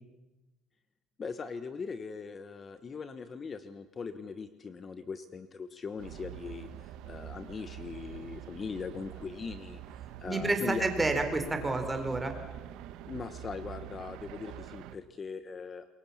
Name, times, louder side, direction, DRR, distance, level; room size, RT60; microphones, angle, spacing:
voice 1, 1.2-11.1 13.0-15.9, left 5 dB, 30° left, 11 dB, 1.2 m, -40 dB
sound 1, 6.0-15.0, right 11 dB, 80° right, 1.2 m, -45 dB
voice 2, 10.3-12.3, right 2 dB, 15° right, 6 dB, 4.2 m, -29 dB
27.5 x 23.0 x 7.3 m, 1.1 s
cardioid pair, 130°, 0 cm